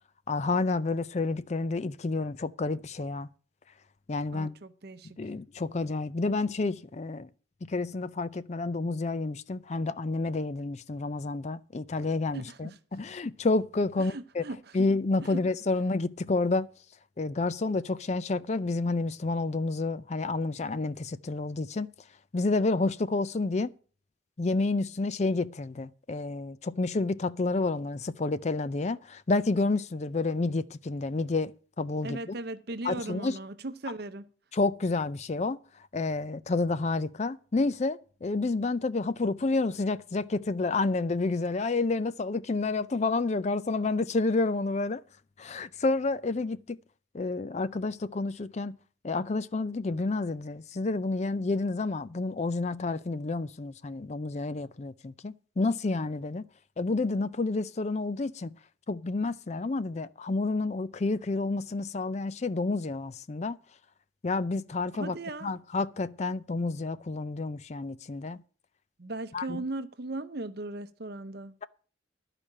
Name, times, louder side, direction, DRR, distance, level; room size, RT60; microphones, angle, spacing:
voice 1, 0.3-3.3 4.1-4.5 5.2-7.3 7.6-14.4 14.7-16.7 17.2-21.9 22.3-23.7 24.4-31.5 31.8-32.3 32.8-33.4 34.5-35.6 35.9-45.0 45.4-46.8 47.1-48.8 49.0-56.4 56.8-58.6 58.9-63.6 64.2-65.2 65.4-68.4 69.3-69.6, left 3 dB, 35° left, 0.4 m, -29 dB
voice 2, 4.3-5.3 12.3-12.8 14.0-14.9 15.2-15.4 32.0-34.3 64.9-65.5 69.0-71.6, right 2 dB, 55° right, 0.8 m, -38 dB
12.5 x 5.0 x 8.6 m
head